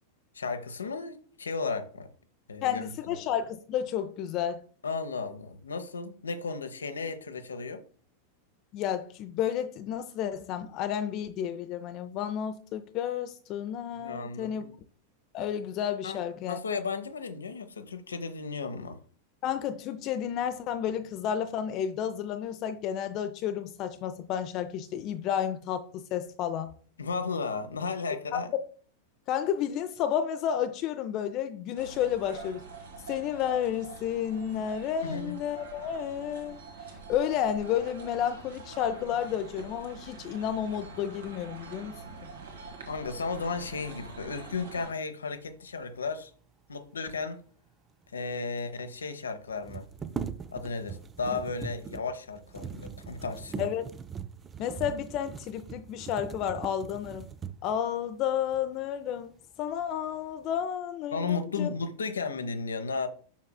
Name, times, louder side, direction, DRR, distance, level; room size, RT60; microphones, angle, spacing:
voice 1, 0.3-2.1 2.5-2.9 4.8-7.8 13.9-14.7 16.0-16.2 16.5-19.0 27.0-28.5 35.0-35.4 42.9-46.3 46.7-47.4 48.1-49.9 50.5-53.7 61.1-63.1, left 4 dB, 70° left, 0.8 m, -34 dB
voice 2, 2.6-4.6 8.7-14.6 15.3-16.6 19.4-26.7 28.3-28.4 29.3-32.6 33.1-36.6 37.1-42.0 53.6-53.9 54.6-57.2 57.6-59.3 59.6-61.7, left 9 dB, 40° left, 0.5 m, -31 dB
sound 1, 31.8-44.9, right 4 dB, 65° right, 1.7 m, -45 dB
sound 2, 48.0-48.1 48.3-48.4 49.5-57.8 58.5-58.6 59.1-59.7 60.1-60.6, right 7 dB, 20° right, 0.5 m, -41 dB
7.2 x 5.8 x 2.2 m
figure-of-eight pair, 90°, 0 cm